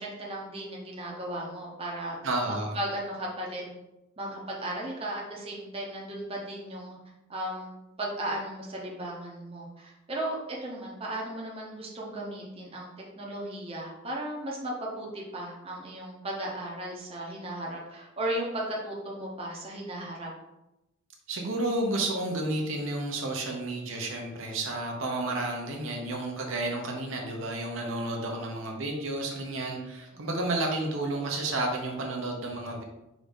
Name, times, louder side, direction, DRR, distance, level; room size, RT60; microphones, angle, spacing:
voice 1, 0.0-2.2 2.4-3.7 4.2-7.0 7.3-7.7 8.0-12.9 13.2-20.3 30.1-30.3, right 1 dB, 30° right, -3 dB, 0.8 m, -36 dB
voice 2, 2.2-2.8 21.3-32.8, right 2 dB, 70° right, 0 dB, 0.8 m, -31 dB
4.9 x 2.7 x 3.5 m, 0.94 s
head